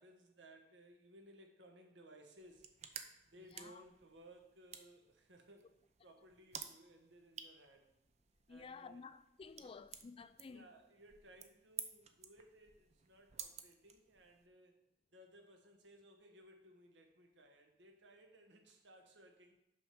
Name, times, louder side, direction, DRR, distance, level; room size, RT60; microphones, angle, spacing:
voice 1, 0.0-2.7 3.3-7.9 8.5-9.0 9.6-9.7 10.5-14.8 15.1-19.6, right 1 dB, 85° right, 1.3 m, -61 dB
sound 1, 2.4-14.5, right 8 dB, 40° right, 0.6 m, -54 dB
voice 2, 3.5-3.8 8.5-10.6, left 4 dB, 30° left, 0.3 m, -53 dB
6.1 x 6.0 x 5.2 m
head